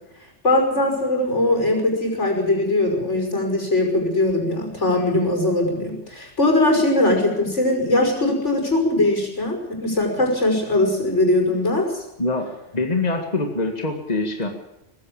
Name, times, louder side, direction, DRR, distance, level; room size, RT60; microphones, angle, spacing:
voice 1, 0.4-12.0, left 2 dB, 80° left, 2 dB, 6.0 m, -20 dB
voice 2, 12.2-14.5, left 2 dB, 35° left, 4 dB, 2.1 m, -24 dB
20.0 x 15.5 x 8.7 m, 0.87 s
omnidirectional pair, 1.2 m